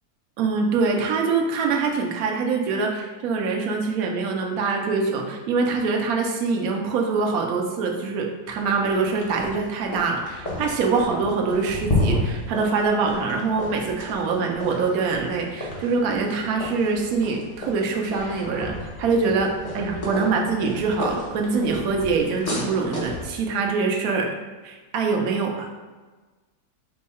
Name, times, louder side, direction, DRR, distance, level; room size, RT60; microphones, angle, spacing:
voice 1, 0.4-24.3 24.6-25.7, right 4 dB, 70° right, 1 dB, 1.0 m, -24 dB
sound 1, 8.5-23.3, left 1 dB, 35° left, 0.6 m, -32 dB
4.5 x 2.2 x 4.1 m, 1.3 s
omnidirectional pair, 1.8 m